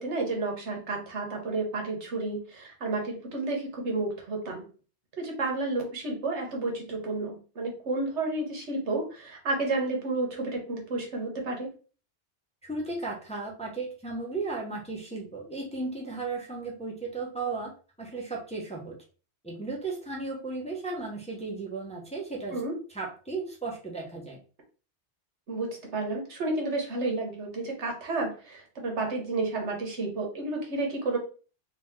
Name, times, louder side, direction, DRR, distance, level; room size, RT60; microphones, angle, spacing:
voice 1, 0.0-4.6 5.2-11.7 22.5-22.8 25.5-31.2, right 2 dB, 80° right, 1 dB, 1.4 m, -31 dB
voice 2, 12.6-17.7 18.0-19.0 19.4-22.6 22.9-24.4, right 3 dB, 5° left, -3 dB, 0.8 m, -35 dB
2.9 x 2.9 x 3.6 m, 0.37 s
omnidirectional pair, 1.2 m